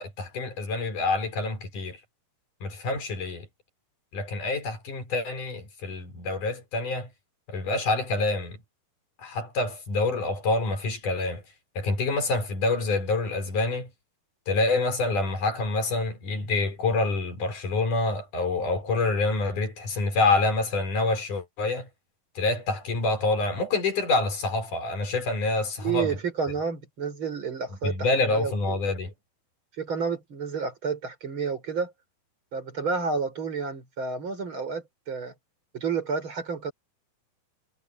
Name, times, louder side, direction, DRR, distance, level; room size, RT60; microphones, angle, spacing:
voice 1, 0.0-2.0 2.6-3.5 4.1-7.1 7.5-8.6 9.2-11.4 11.8-13.9 14.5-21.9 22.4-26.2 27.8-29.1, left 3 dB, 55° left, 7.1 m, -27 dB
voice 2, 25.8-28.8 29.8-31.9 32.5-35.3 35.7-36.7, right 5 dB, 30° right, 5.6 m, -30 dB
omnidirectional pair, 4.4 m